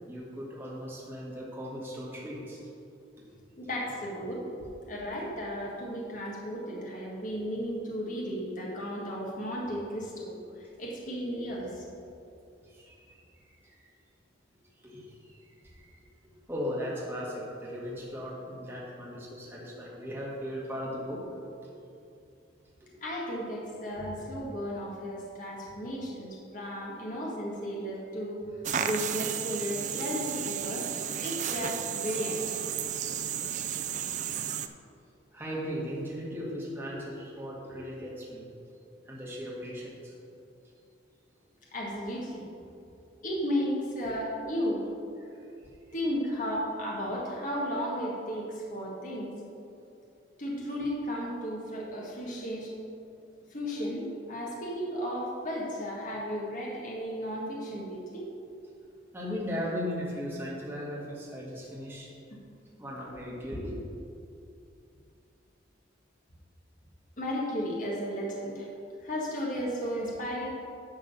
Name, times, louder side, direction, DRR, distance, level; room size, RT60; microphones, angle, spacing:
voice 1, 0.1-2.6 12.6-13.9 14.8-16.0 16.5-21.2 22.8-22.9 24.0-24.2 31.4-31.5 35.3-38.4 39.1-40.1 45.2-45.3 59.1-62.1 62.8-63.7, equal, 10° right, -6 dB, 1.8 m, -37 dB
voice 2, 3.6-4.4 4.9-11.8 23.0-28.4 28.8-30.9 31.2-32.6 41.7-42.4 43.2-44.9 45.9-49.3 50.4-52.7 53.5-58.3 67.2-68.7 69.0-70.5, equal, 45° left, -3 dB, 1.6 m, -34 dB
sound 1, 28.6-34.7, right 9 dB, 40° right, 0.4 m, -33 dB
11.5 x 3.8 x 6.8 m, 2.6 s
head